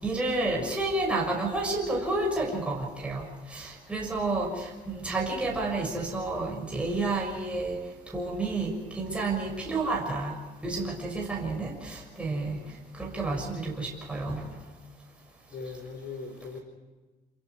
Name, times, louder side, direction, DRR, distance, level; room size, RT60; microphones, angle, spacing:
voice 1, 0.0-7.8 8.1-10.3 10.6-12.6 13.0-14.4, right 2 dB, 5° right, -1 dB, 6.5 m, -30 dB
voice 2, 15.5-16.6, left 4 dB, 65° left, 3 dB, 5.1 m, -40 dB
28.5 x 23.0 x 4.8 m, 1.3 s
cardioid pair, 110°, 17 cm